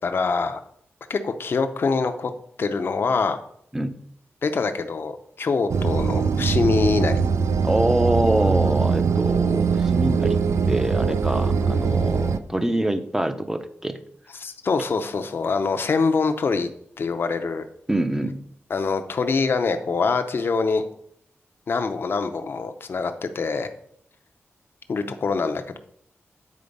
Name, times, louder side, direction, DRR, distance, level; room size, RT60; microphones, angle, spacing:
voice 1, 0.0-0.6 1.1-2.3 2.6-3.4 4.4-7.2 14.4-16.7 17.0-17.6 18.7-20.8 21.7-23.7 24.9-25.8, left 4 dB, 50° left, 7 dB, 0.6 m, -24 dB
sound 1, 5.7-12.4, right 5 dB, 90° right, 0.5 m, -22 dB
voice 2, 7.6-10.4 10.7-14.0 17.9-18.4, right 1 dB, 10° right, 10 dB, 0.5 m, -25 dB
8.4 x 4.3 x 5.2 m, 0.67 s
wide cardioid pair, 160°, 5 cm